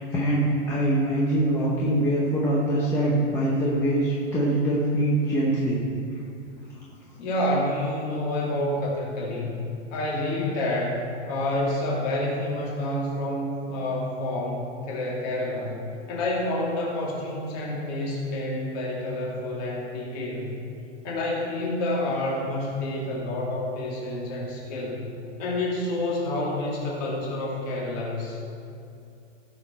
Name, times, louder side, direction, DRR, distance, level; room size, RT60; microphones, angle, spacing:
voice 1, 0.0-5.8 6.1-6.2, right 1 dB, 5° left, -6 dB, 0.7 m, -23 dB
voice 2, 7.2-9.6 9.9-15.8 16.1-20.5 21.0-25.1 25.4-28.4, left 1 dB, 35° left, -4 dB, 2.5 m, -28 dB
15.5 x 6.5 x 4.4 m, 2.5 s
hypercardioid pair, 160°, 36 cm